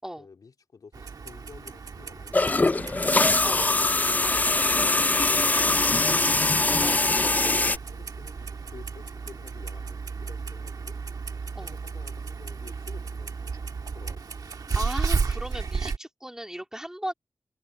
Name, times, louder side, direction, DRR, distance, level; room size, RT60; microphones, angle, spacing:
voice 1, 0.2-3.8 7.6-11.0 11.6-13.5 13.9-14.2, left 5 dB, 80° left, 3.0 m, -51 dB
Clock, 0.9-16.0, right 5 dB, 80° right, 1.5 m, -34 dB
sound 1, 2.3-7.8, left 2 dB, 25° left, 0.4 m, -22 dB
voice 2, 3.4-3.7 4.2-4.4 6.8-7.1 11.5-11.8 14.7-17.1, right 1 dB, 10° right, 3.2 m, -36 dB
wide cardioid pair, 105°, 6 cm